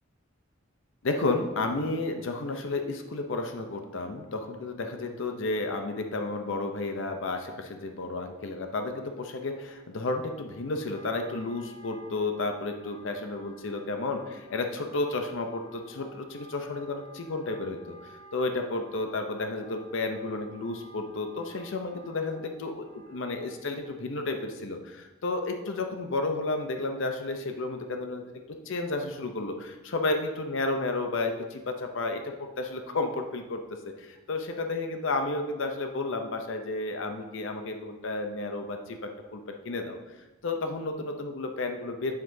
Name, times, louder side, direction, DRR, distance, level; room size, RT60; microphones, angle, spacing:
voice 1, 1.0-28.3 28.7-33.6 34.0-40.1 40.4-42.1, left 3 dB, 65° left, 5 dB, 0.6 m, -32 dB
Wind instrument woodwind instrument, 10.1-24.1, right 2 dB, 85° left, 2.4 m, -52 dB
8.2 x 7.5 x 2.7 m, 1.1 s
head